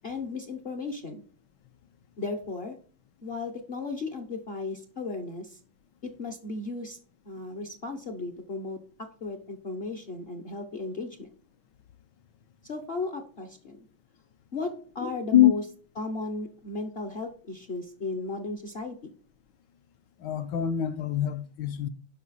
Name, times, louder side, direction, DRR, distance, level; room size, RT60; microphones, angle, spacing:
voice 1, 0.0-1.2 2.2-2.8 3.2-5.6 6.0-7.0 7.2-11.3 12.6-13.8 14.5-15.6 16.0-19.1, left 3 dB, 50° left, 0.7 m, -35 dB
voice 2, 15.0-15.5 20.2-21.9, left 12 dB, 70° left, 1.2 m, -24 dB
11.0 x 5.3 x 4.1 m
omnidirectional pair, 2.1 m